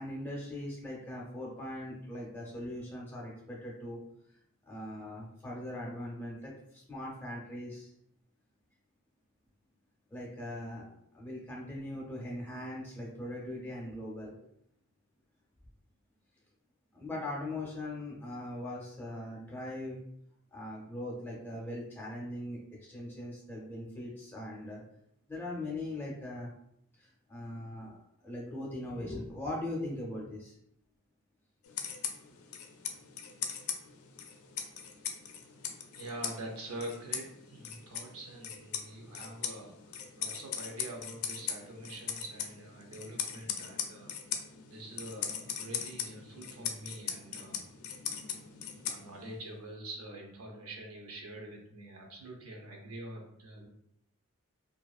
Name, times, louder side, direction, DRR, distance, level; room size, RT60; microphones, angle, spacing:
voice 1, 0.0-4.0 4.7-7.9 10.1-14.3 16.9-20.0 20.5-24.8 25.3-26.5 27.0-30.6, left 1 dB, 10° left, -3 dB, 0.5 m, -40 dB
sound 1, 31.6-49.4, left 8 dB, 85° left, 0.4 m, -40 dB
voice 2, 36.0-44.1 44.7-47.6 48.9-53.7, right 1 dB, 85° right, 1 dB, 0.6 m, -45 dB
2.4 x 2.3 x 2.3 m, 0.73 s
head